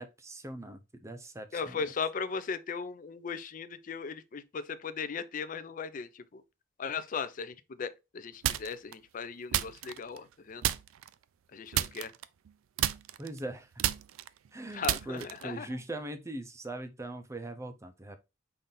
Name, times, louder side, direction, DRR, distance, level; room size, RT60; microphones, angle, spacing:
voice 1, 0.0-1.8 13.2-13.7 14.5-18.2, right 1 dB, 15° right, 0.5 m, -41 dB
voice 2, 1.5-6.4 6.8-10.6 11.5-12.1 14.7-15.7, left 5 dB, 40° left, 0.4 m, -37 dB
sound 1, 8.4-8.9 9.5-10.3 10.6-11.1 11.7-12.5 12.8-15.6, right 12 dB, 90° right, 0.3 m, -32 dB
5.5 x 2.6 x 3.7 m
head